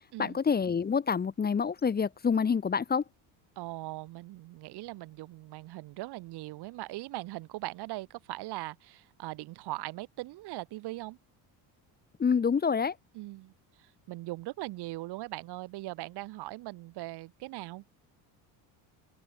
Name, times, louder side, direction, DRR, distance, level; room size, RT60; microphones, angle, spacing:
voice 1, 0.2-3.0 12.2-12.9, left 6 dB, 20° left, 2.0 m, -27 dB
voice 2, 3.6-11.2 13.1-13.5 13.8-17.8, right 18 dB, 60° right, 3.3 m, -40 dB
open air
cardioid pair, 150°, 45 cm